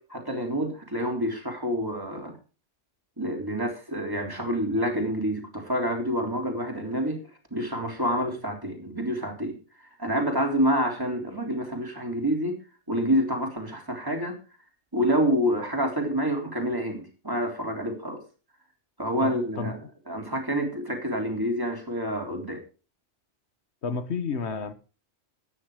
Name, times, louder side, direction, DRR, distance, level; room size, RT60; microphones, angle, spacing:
voice 1, 0.1-2.3 3.2-7.2 7.5-12.6 12.9-14.3 14.9-18.2 19.0-19.7 20.1-22.6, equal, 20° right, 3.6 m, -28 dB
voice 2, 19.2-19.7 23.8-24.7, left 5 dB, 70° left, 1.6 m, -31 dB
13.0 x 9.8 x 5.0 m
omnidirectional pair, 1.2 m